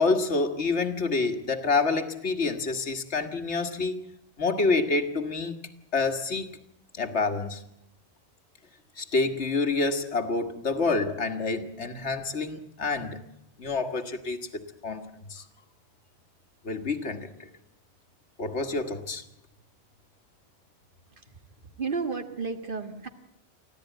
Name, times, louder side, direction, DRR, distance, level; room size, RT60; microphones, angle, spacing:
voice 1, 0.0-4.1 4.4-5.5 5.9-6.6 7.0-7.6 9.0-13.2 13.6-14.5 14.8-15.0 15.3-15.4 16.6-17.5 18.4-19.2, left 3 dB, 90° left, 7 dB, 2.0 m, -27 dB
voice 2, 21.1-23.1, right 4 dB, 50° right, 7 dB, 1.9 m, -33 dB
24.5 x 15.5 x 9.2 m, 0.80 s
omnidirectional pair, 1.1 m